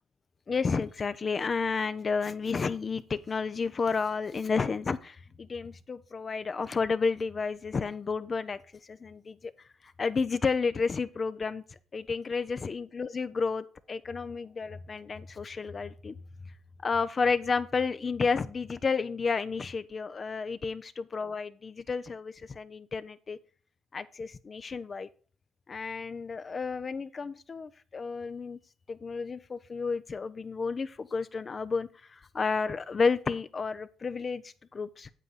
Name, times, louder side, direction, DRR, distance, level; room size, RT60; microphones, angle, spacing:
voice 1, 0.5-9.5 9.8-11.6 11.9-16.2 16.8-23.4 23.9-25.1 25.7-28.6 28.9-35.1, left 5 dB, 40° left, 12 dB, 0.5 m, -31 dB
8.2 x 7.8 x 4.0 m, 0.40 s
cardioid pair, 90°, 0 cm